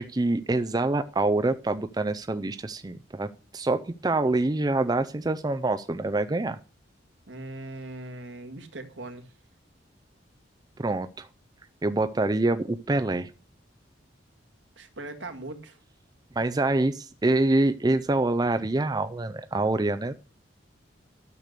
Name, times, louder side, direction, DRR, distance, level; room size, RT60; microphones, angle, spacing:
voice 1, 0.0-6.6 10.8-11.3 11.8-13.3 16.4-20.1, right 2 dB, 20° right, 0.4 m, -26 dB
voice 2, 7.3-9.3 14.8-15.8, right 2 dB, 70° right, 2.0 m, -40 dB
12.5 x 6.7 x 6.6 m
head